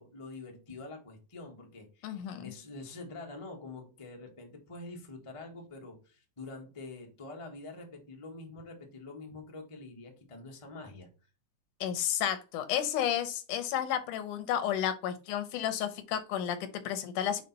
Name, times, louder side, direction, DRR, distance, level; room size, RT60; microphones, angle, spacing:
voice 1, 0.0-11.1, left 3 dB, 20° left, 1 dB, 0.8 m, -46 dB
voice 2, 2.0-2.4 11.8-17.4, left 10 dB, 85° left, 10 dB, 2.4 m, -32 dB
5.3 x 5.0 x 4.1 m, 0.32 s
omnidirectional pair, 3.6 m